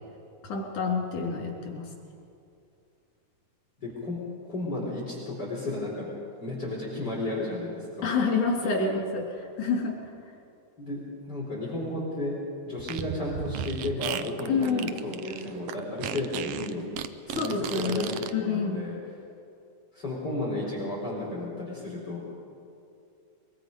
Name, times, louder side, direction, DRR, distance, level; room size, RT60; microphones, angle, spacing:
voice 1, 0.4-1.9 8.0-9.2 9.6-10.0 14.5-14.9 17.3-18.9, left 4 dB, 90° left, 0 dB, 4.6 m, -28 dB
voice 2, 3.8-4.2 4.5-6.1 6.4-8.1 8.6-8.9 10.8-12.4 12.6-16.9 17.3-19.0 19.9-22.3, left 2 dB, 35° left, -5 dB, 4.6 m, -33 dB
Fart, 12.8-18.3, right 9 dB, 70° right, 1.6 m, -35 dB
23.5 x 23.0 x 5.3 m, 2.5 s
omnidirectional pair, 3.4 m